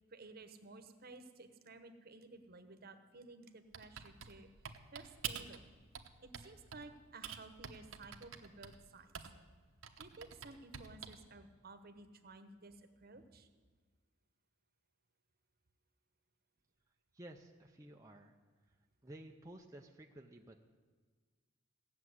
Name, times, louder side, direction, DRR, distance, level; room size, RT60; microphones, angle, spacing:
voice 1, 0.1-4.5 4.9-5.7 6.2-9.1 10.0-13.5, right 3 dB, 50° right, 8 dB, 1.1 m, -55 dB
Typing, 3.7-5.6 5.9-6.9 7.2-9.5 9.8-11.3, right 8 dB, 80° right, 1.1 m, -47 dB
voice 2, 17.1-18.4 19.0-20.7, right 1 dB, 15° right, 1 dB, 0.6 m, -54 dB
16.5 x 7.3 x 9.6 m, 1.5 s
head